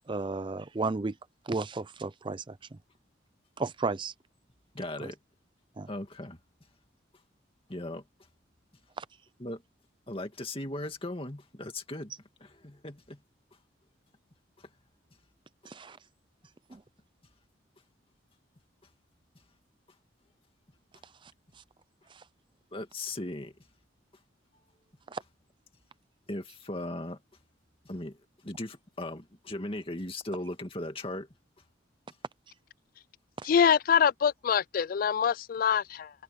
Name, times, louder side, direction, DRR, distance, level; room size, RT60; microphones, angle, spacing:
voice 1, 0.1-1.1 1.5-2.8 3.6-4.1 5.8-5.9 9.0-9.1 15.6-16.0 16.7-16.8 21.2-21.3 22.1-22.2 25.1-25.2 33.4-33.5, right 3 dB, 25° right, 0.5 m, -34 dB
voice 2, 4.7-5.2 5.9-6.4 7.7-8.0 9.4-9.6 10.1-12.1 12.4-13.2 14.6-14.7 22.7-23.5 26.3-27.2 27.9-28.2 28.4-31.3, left 1 dB, 30° left, 2.3 m, -37 dB
voice 3, 33.4-36.1, left 7 dB, 50° left, 0.3 m, -25 dB
open air
head